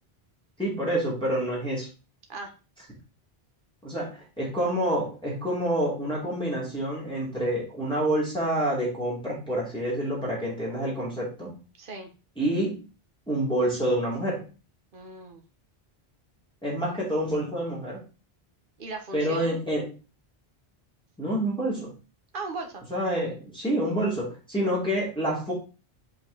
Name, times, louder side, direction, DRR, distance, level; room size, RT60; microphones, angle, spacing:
voice 1, 0.6-1.9 3.8-11.6 12.4-12.8 13.3-14.4 16.6-18.0 19.1-19.9 21.2-21.9 22.9-25.5, right 1 dB, 5° left, -6 dB, 2.8 m, -27 dB
voice 2, 11.8-12.1 14.9-15.4 18.8-19.6 22.3-22.8, right 3 dB, 55° right, 4 dB, 1.4 m, -37 dB
5.7 x 5.1 x 4.0 m, 0.33 s
omnidirectional pair, 1.1 m